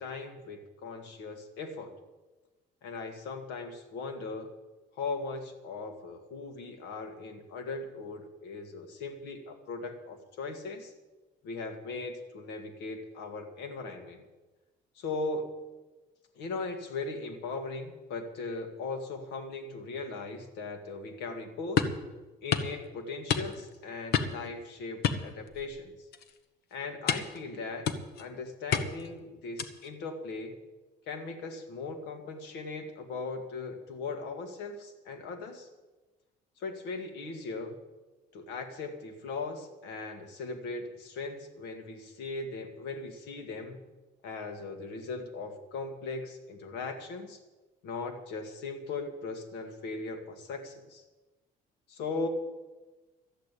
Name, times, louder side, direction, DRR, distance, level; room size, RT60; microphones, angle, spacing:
voice 1, 0.0-2.0 2.8-4.5 4.9-10.9 11.4-14.2 15.0-15.5 16.4-21.9 22.4-25.9 26.7-27.9 28.2-30.6 31.1-35.7 36.6-37.8 38.3-43.8 44.2-47.4 47.8-51.0 51.9-52.3, left 3 dB, 85° left, 7 dB, 2.0 m, -38 dB
sound 1, 21.8-22.0 22.5-22.7 23.3-23.7 24.1-24.5 25.0-25.8 26.1-26.4 27.1-27.4 27.9-28.3 28.7-29.1 29.6-29.9, left 7 dB, 70° left, 1.1 m, -29 dB
13.0 x 8.3 x 9.1 m, 1.2 s
cardioid pair, 110°, 17 cm